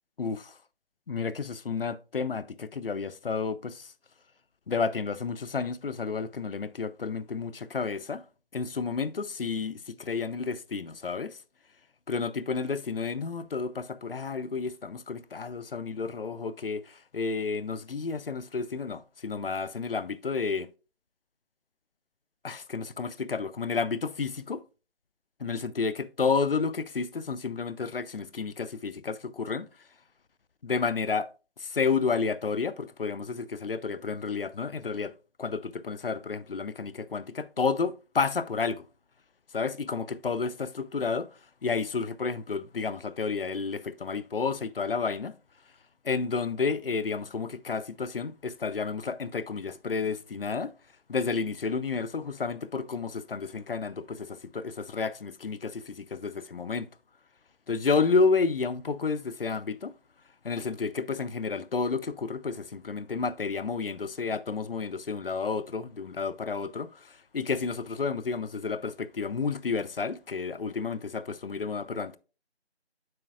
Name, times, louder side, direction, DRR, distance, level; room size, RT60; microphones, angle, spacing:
voice 1, 0.2-0.6 1.1-3.9 4.7-8.2 8.5-11.4 12.1-20.7 22.4-24.6 25.4-29.7 30.6-31.3 31.6-35.1 35.4-38.8 39.5-41.3 41.6-45.3 46.0-50.7 51.1-56.9 57.7-59.9 60.4-72.2, left 5 dB, 60° left, 0.4 m, -31 dB
7.6 x 5.4 x 2.3 m
figure-of-eight pair, 175°, 32 cm